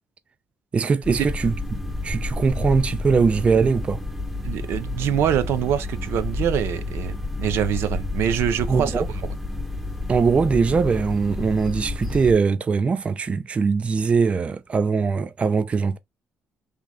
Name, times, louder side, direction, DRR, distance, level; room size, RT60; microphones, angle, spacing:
voice 1, 0.7-1.5 2.0-4.0 8.7-9.1 10.1-16.0, right 5 dB, 30° right, 0.4 m, -21 dB
sound 1, 1.0-12.3, left 2 dB, ahead, 0.8 m, -30 dB
voice 2, 4.4-9.2, right 10 dB, 70° right, 0.7 m, -25 dB
3.4 x 3.1 x 3.7 m
cardioid pair, 115°, 4 cm